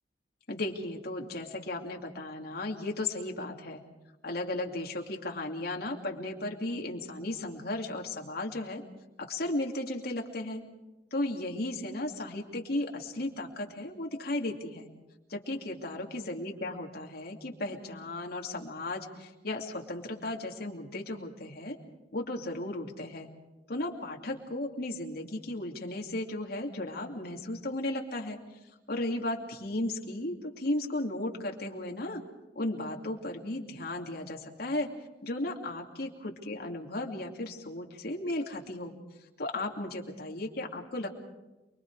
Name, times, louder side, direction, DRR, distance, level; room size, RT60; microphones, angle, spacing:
voice 1, 0.5-3.8 4.2-8.8 9.2-10.6 11.1-14.9 15.3-21.8 22.1-23.3 23.7-28.4 28.9-32.2 32.5-34.9 35.2-38.9 39.4-41.1, left 1 dB, 60° left, 1 dB, 2.7 m, -35 dB
28.5 x 22.5 x 4.9 m, 1.0 s
head